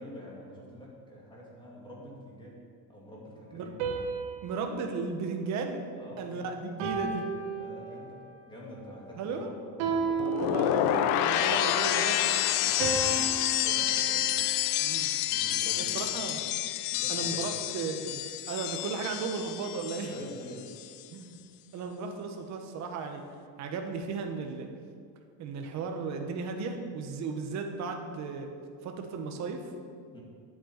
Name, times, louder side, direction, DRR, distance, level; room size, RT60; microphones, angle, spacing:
voice 1, 0.0-2.6 2.9-3.7 6.0-6.5 7.6-8.2 8.4-9.5 9.9-10.2 12.6-14.4 15.3-16.1 16.9-17.5 20.1-20.7 30.1-30.2, equal, 10° left, -4 dB, 2.6 m, -46 dB
sound 1, 3.8-6.2 6.8-8.3 9.8-11.3 12.8-15.1, right 4 dB, 75° right, 2.8 m, -35 dB
voice 2, 4.4-5.9 6.2-7.2 9.2-9.5 10.4-12.4 14.8-15.1 15.8-16.4 17.1-18.2 18.5-20.1 21.1-21.4 21.7-23.2 23.6-24.7 25.4-28.5 28.8-29.7, right 4 dB, 45° right, 4 dB, 1.4 m, -35 dB
sound 2, 10.2-20.3 20.6-21.0, left 12 dB, 85° left, 0.8 m, -29 dB
9.4 x 8.1 x 9.0 m, 2.1 s
cardioid pair, 175°, 40 cm